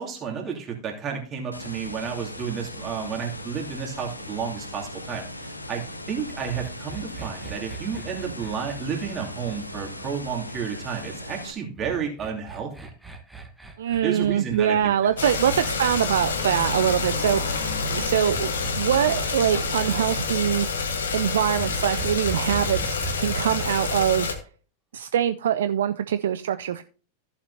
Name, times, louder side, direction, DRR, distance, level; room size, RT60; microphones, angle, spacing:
voice 1, 0.0-12.7 14.0-14.9, right 7 dB, 30° right, 0 dB, 2.7 m, -31 dB
sound 1, 1.5-11.5, left 1 dB, 85° left, 1.0 m, -38 dB
sound 2, 6.4-10.8 11.8-15.9 17.2-20.0 21.5-24.4, right 4 dB, 5° right, 1.4 m, -39 dB
voice 2, 13.8-20.7 21.1-24.4 24.9-26.8, right 10 dB, 60° right, 11 dB, 0.4 m, -24 dB
sound 3, 15.2-24.3, left 4 dB, 65° left, 1.6 m, -28 dB
14.5 x 7.3 x 2.8 m, 0.41 s
figure-of-eight pair, 90°, 0 cm